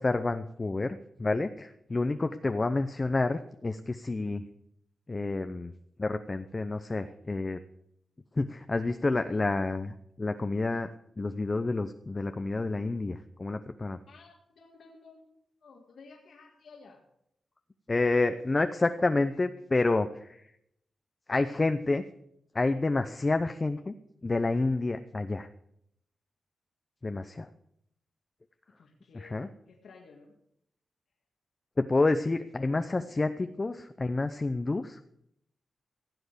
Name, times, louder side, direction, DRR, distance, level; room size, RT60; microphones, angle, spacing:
voice 1, 0.0-4.4 5.1-5.7 6.0-7.6 8.4-10.9 11.2-14.0 17.9-20.4 21.3-22.0 22.5-23.9 24.2-25.5 27.0-27.5 29.1-29.5 31.8-35.0, left 3 dB, 30° left, 9 dB, 0.7 m, -29 dB
voice 2, 14.1-15.2 15.6-17.0 28.8-30.3, left 4 dB, 75° left, 0 dB, 1.9 m, -54 dB
16.0 x 7.8 x 6.7 m, 0.76 s
cardioid pair, 80°, 0 cm